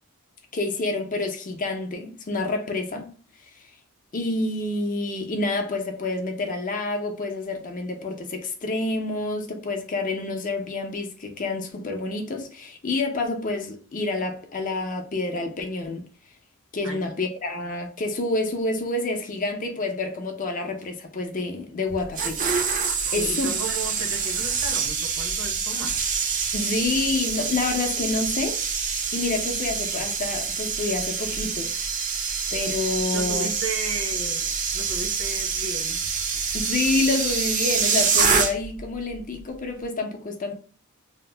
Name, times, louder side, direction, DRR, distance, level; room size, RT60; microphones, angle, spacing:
voice 1, 0.5-3.1 3.5-3.6 4.1-16.1 16.7-22.7 23.1-23.5 26.5-31.7 32.5-33.5 36.5-40.6, left 3 dB, 35° left, 0.5 m, -28 dB
sound 1, 21.9-38.8 39.1-39.4, right 6 dB, 35° right, 0.4 m, -26 dB
voice 2, 23.0-26.0 33.1-36.1, right 3 dB, 70° right, 0.8 m, -35 dB
2.7 x 2.0 x 3.3 m
head